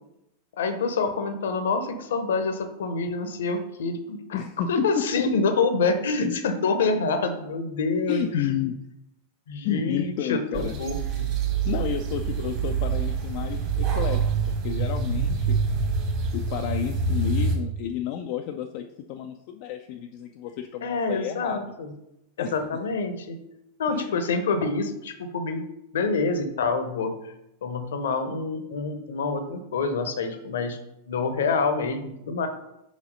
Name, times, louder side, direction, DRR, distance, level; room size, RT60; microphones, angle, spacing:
voice 1, 0.6-4.4 4.7-8.5 9.5-11.3 20.8-21.9 22.4-23.4 23.8-25.6 25.9-27.1 27.6-30.8 31.1-32.5, left 4 dB, 60° left, 8 dB, 0.9 m, -27 dB
voice 2, 4.3-5.3 6.2-6.3 8.1-8.8 9.6-10.7 11.6-14.3 14.6-15.6 16.3-21.6 22.4-22.6 23.9-24.2, left 9 dB, 45° left, 5 dB, 0.5 m, -31 dB
sound 1, 10.5-17.6, right 5 dB, 40° right, 1.8 m, -26 dB
5.2 x 4.8 x 5.3 m, 0.85 s
figure-of-eight pair, 90°, 0 cm